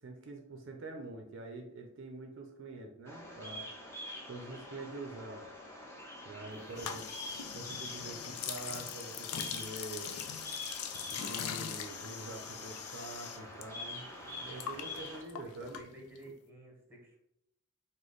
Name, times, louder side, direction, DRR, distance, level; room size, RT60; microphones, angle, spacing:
voice 1, 0.0-3.7 4.2-5.5 6.2-7.1 7.5-10.1 11.1-15.8, right 2 dB, 55° right, 2 dB, 0.5 m, -45 dB
Bird vocalization bird call bird song, 3.1-15.2, left 1 dB, 10° left, 0.6 m, -46 dB
sound 1, 6.7-13.7 13.9-16.3, left 8 dB, 80° left, 0.4 m, -41 dB
voice 2, 15.4-17.2, right 1 dB, 10° right, -1 dB, 1.1 m, -52 dB
5.0 x 2.1 x 3.9 m, 0.80 s
head